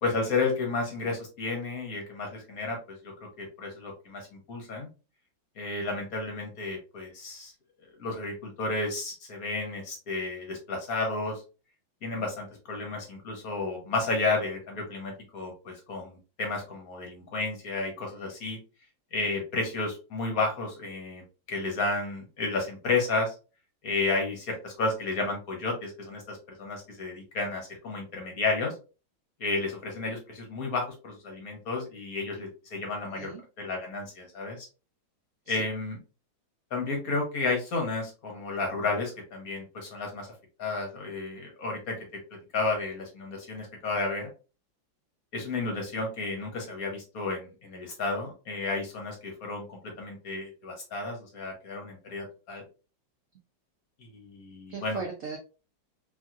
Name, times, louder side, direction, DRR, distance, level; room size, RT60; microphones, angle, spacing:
voice 1, 0.0-3.1 3.4-4.9 5.6-7.5 8.0-11.4 12.0-18.6 19.1-23.4 23.8-28.7 29.4-33.3 33.6-34.7 35.5-36.0 36.7-40.3 40.6-42.0 42.5-44.3 45.3-52.6 54.0-55.0, left 3 dB, 55° left, 1 dB, 1.2 m, -32 dB
voice 2, 32.8-33.4 35.5-35.6 54.7-55.4, right 5 dB, 85° right, 1 dB, 0.6 m, -38 dB
3.0 x 2.7 x 2.4 m, 0.33 s
omnidirectional pair, 2.1 m